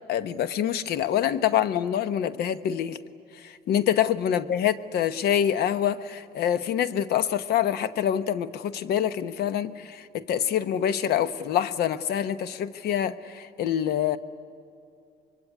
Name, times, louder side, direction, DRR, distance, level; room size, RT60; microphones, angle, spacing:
voice 1, 0.1-3.0 3.4-14.2, left 10 dB, 70° left, 13 dB, 1.1 m, -26 dB
25.0 x 22.5 x 9.9 m, 2.6 s
cardioid pair, 110°, 17 cm